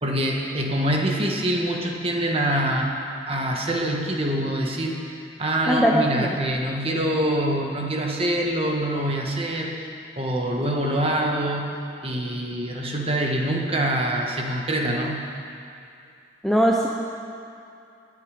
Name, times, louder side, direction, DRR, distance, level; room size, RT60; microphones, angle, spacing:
voice 1, 0.0-2.9 3.3-9.7 10.2-11.8 12.0-15.3, right 1 dB, 30° right, 0 dB, 1.5 m, -25 dB
voice 2, 5.7-6.4 16.4-16.9, equal, ahead, -1 dB, 0.7 m, -20 dB
21.5 x 8.7 x 5.1 m, 2.5 s
head